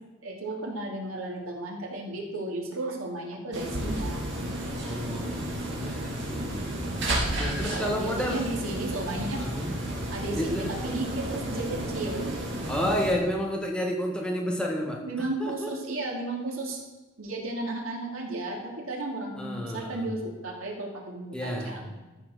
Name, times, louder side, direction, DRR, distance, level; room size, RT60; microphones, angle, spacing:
voice 1, 0.2-4.3 5.6-5.7 7.7-9.4 10.1-12.3 15.1-16.8 17.2-21.9, right 2 dB, 90° right, 0 dB, 2.9 m, -34 dB
sound 1, 3.5-13.1, right 1 dB, 55° right, 2.9 m, -32 dB
voice 2, 4.8-6.9 7.4-8.4 9.4-9.7 10.4-10.7 12.7-15.0 15.4-15.7 16.5-16.6 19.4-20.0 21.3-21.8, equal, 5° left, 0 dB, 1.6 m, -31 dB
12.5 x 7.1 x 6.6 m, 1.2 s
head